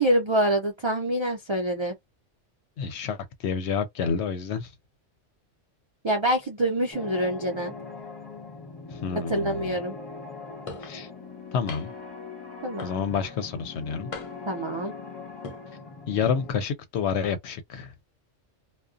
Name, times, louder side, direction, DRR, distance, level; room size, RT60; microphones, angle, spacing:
voice 1, 0.0-1.9 6.0-7.7 9.3-9.9 12.6-13.0 14.5-14.9, right 1 dB, 50° right, 0.3 m, -26 dB
voice 2, 2.8-4.7 8.9-9.7 10.8-11.1 11.5-11.9 12.8-14.1 16.1-17.9, left 6 dB, 70° left, 0.8 m, -29 dB
sound 1, 6.9-16.5, left 4 dB, 20° left, 1.0 m, -41 dB
sound 2, 10.7-11.0 11.7-12.1 12.8-13.3 14.1-14.6 15.3-15.6, left 3 dB, 45° left, 0.4 m, -39 dB
2.4 x 2.2 x 2.4 m
omnidirectional pair, 1.3 m